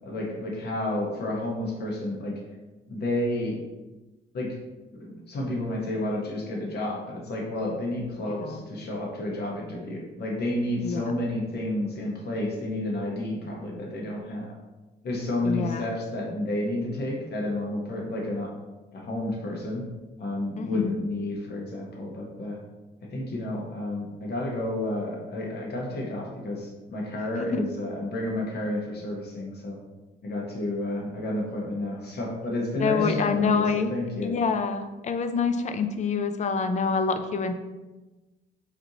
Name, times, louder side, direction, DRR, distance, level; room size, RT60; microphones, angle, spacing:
voice 1, 0.0-2.3 2.9-3.6 4.3-4.6 5.0-14.5 15.0-18.5 18.9-19.8 20.2-22.6 23.1-29.8 30.2-34.3, left 1 dB, 55° left, -2 dB, 1.0 m, -31 dB
voice 2, 8.3-8.6 10.8-11.1 15.4-15.8 20.6-20.9 27.4-27.6 32.8-33.9 34.2-37.5, left 5 dB, 35° left, 9 dB, 0.4 m, -26 dB
4.4 x 2.6 x 2.8 m, 1.1 s
cardioid pair, 90°, 20 cm